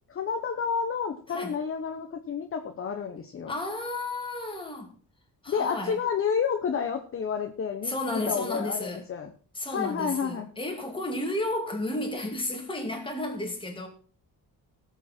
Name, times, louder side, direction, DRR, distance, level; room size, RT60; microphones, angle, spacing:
voice 1, 0.1-3.5 5.5-9.3 9.7-10.5, left 6 dB, 35° left, 1.0 m, -30 dB
voice 2, 3.5-4.9 5.4-6.0 7.8-9.0 9.5-13.9, left 1 dB, 15° left, 2.3 m, -32 dB
18.0 x 7.2 x 4.4 m
cardioid pair, 165°, 37 cm